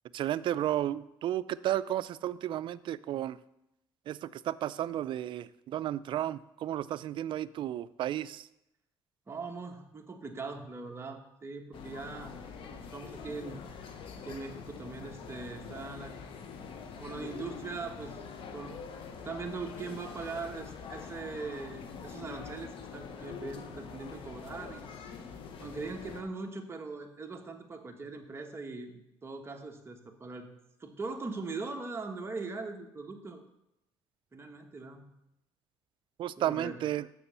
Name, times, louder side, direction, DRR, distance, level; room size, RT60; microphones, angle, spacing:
voice 1, 0.1-3.4 4.1-8.5 36.2-37.1, right 12 dB, 65° right, 16 dB, 0.4 m, -33 dB
voice 2, 9.3-12.4 12.6-13.6 14.2-16.2 17.0-18.8 19.2-24.9 25.6-30.5 30.8-33.4 34.3-35.1 36.4-36.8, right 3 dB, 25° right, 3 dB, 1.3 m, -41 dB
sound 1, 11.7-26.2, left 6 dB, 70° left, 1.0 m, -45 dB
6.9 x 6.1 x 6.9 m, 0.86 s
cardioid pair, 90°, 9 cm